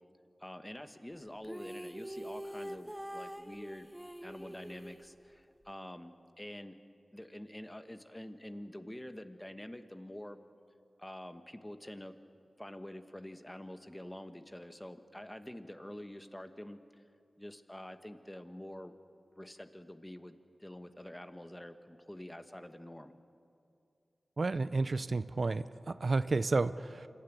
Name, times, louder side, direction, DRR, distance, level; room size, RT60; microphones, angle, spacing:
voice 1, 0.4-3.9 4.2-6.7 7.1-10.4 11.0-12.1 12.6-17.0 17.4-18.9 19.3-20.3 20.6-23.1, left 1 dB, 15° left, 9 dB, 1.3 m, -47 dB
sound 1, 1.4-5.7, equal, 10° right, 0.6 m, -45 dB
voice 2, 24.4-27.1, right 3 dB, 55° right, 14 dB, 0.5 m, -31 dB
26.0 x 12.5 x 9.4 m, 2.5 s
cardioid pair, 50°, 0 cm